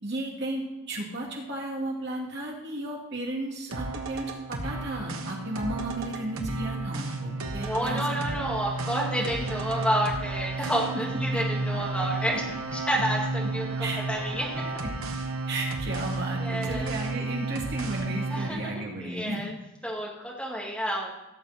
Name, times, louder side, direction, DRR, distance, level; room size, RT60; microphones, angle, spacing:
voice 1, 0.0-8.3 9.4-9.5 10.6-10.7 11.3-11.4 13.8-14.0 14.8-15.1 15.5-19.4, right 1 dB, 50° right, -2 dB, 2.6 m, -34 dB
sound 1, 3.7-18.5, right 3 dB, 85° right, 1.4 m, -32 dB
voice 2, 7.5-12.4 12.7-14.6 16.3-16.9 18.3-19.5 19.8-21.1, equal, 5° left, -4 dB, 2.2 m, -30 dB
16.5 x 6.9 x 4.4 m, 0.99 s
head